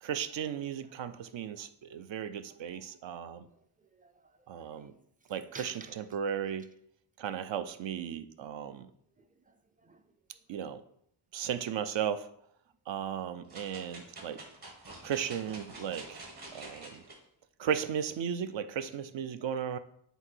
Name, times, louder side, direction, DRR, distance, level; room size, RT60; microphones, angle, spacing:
voice 1, 0.0-3.5 4.5-4.9 5.3-6.7 7.2-8.9 10.5-10.8 11.3-12.3 12.9-14.4 15.0-16.2 16.5-17.0 17.6-19.8, right 8 dB, 65° right, 0.6 m, -35 dB
voice 2, 2.5-3.0 3.3-5.0 5.5-6.0 9.2-10.1, right 3 dB, 20° right, 0.5 m, -54 dB
sound 1, 13.5-17.2 17.7-17.8, right 2 dB, 50° right, 2.0 m, -47 dB
7.9 x 2.7 x 4.4 m
cardioid pair, 85°, 48 cm